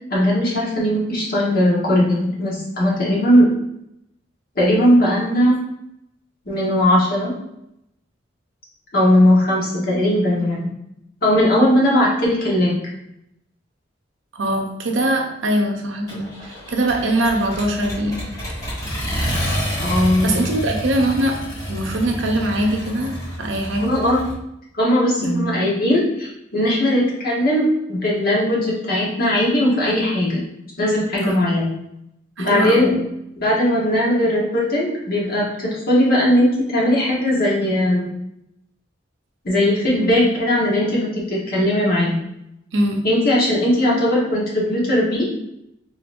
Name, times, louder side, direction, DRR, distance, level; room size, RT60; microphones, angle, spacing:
voice 1, 0.1-3.5 4.5-5.6 6.5-7.3 8.9-10.7 11.2-12.8 19.8-20.4 23.8-24.2 24.7-30.4 30.8-31.7 32.4-32.9 33.4-38.1 39.4-42.2 43.0-45.3, left 1 dB, 50° left, -5 dB, 1.3 m, -18 dB
voice 2, 14.3-18.2 20.2-21.4 21.7-24.0 25.2-25.5 31.2-31.5 32.4-33.0 42.7-43.0, right 1 dB, 75° right, 2 dB, 0.7 m, -22 dB
Accelerating revving vroom, 16.1-24.3, equal, 20° left, 1.3 m, -28 dB
5.1 x 3.0 x 2.6 m, 0.83 s
head